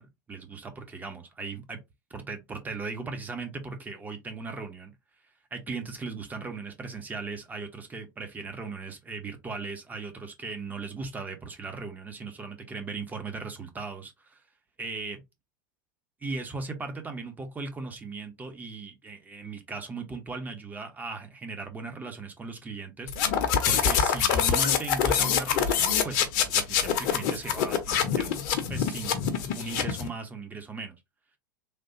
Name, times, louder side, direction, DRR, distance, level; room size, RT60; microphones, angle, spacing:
voice 1, 0.0-1.8 2.1-4.9 5.5-14.4 14.8-15.2 16.2-23.1 23.6-28.4 28.7-29.2 29.5-31.0, right 4 dB, 15° right, 0.9 m, -37 dB
sound 1, 23.1-30.1, left 8 dB, 50° left, 0.7 m, -25 dB
3.4 x 2.3 x 2.8 m
figure-of-eight pair, 85°, 11 cm